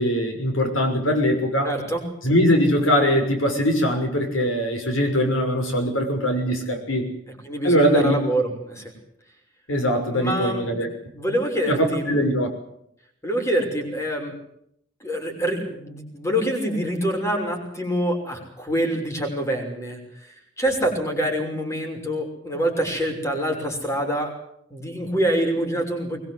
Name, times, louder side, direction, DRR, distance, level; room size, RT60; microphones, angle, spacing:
voice 1, 0.0-1.7 2.2-7.1 7.6-8.2 9.7-10.9 11.7-12.5, equal, 90° left, 5 dB, 6.3 m, -21 dB
voice 2, 1.6-2.0 7.5-8.9 10.1-12.2 13.2-14.3 15.0-20.0 20.6-24.3 24.7-26.2, right 1 dB, 15° left, 3 dB, 5.9 m, -26 dB
23.0 x 22.0 x 8.0 m, 0.72 s
head